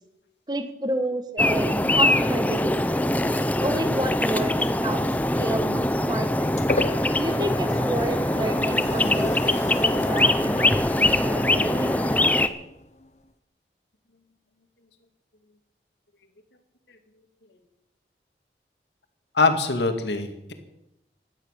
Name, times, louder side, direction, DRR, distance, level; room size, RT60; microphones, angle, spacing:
voice 1, 0.5-3.1 3.6-5.0 5.4-6.6 7.2-11.9, right 1 dB, 25° right, 9 dB, 1.4 m, -30 dB
sound 1, 1.4-12.5, left 1 dB, 10° left, 0.6 m, -23 dB
sound 2, 6.3-13.3, left 2 dB, 40° left, 1.1 m, -35 dB
voice 2, 19.3-20.5, left 3 dB, 85° left, 7 dB, 2.1 m, -23 dB
16.5 x 12.0 x 6.6 m, 0.86 s
head